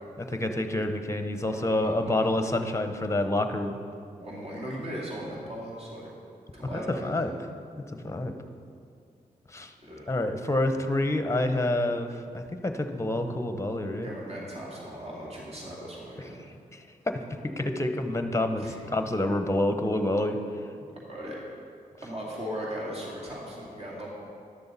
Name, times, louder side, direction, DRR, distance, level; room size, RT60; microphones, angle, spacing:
voice 1, 0.2-3.8 6.7-7.3 8.0-8.4 9.5-9.7 10.1-14.1 17.6-18.6 18.9-20.4, left 1 dB, 20° left, 7 dB, 0.9 m, -27 dB
voice 2, 1.4-2.2 4.2-6.1 6.5-7.3 9.8-10.1 14.0-16.4 18.6-18.8 20.7-20.8 21.1-21.4 22.0-24.1, equal, 40° right, -5 dB, 2.3 m, -38 dB
11.0 x 6.8 x 4.1 m, 2.4 s
supercardioid pair, 45°, 16 cm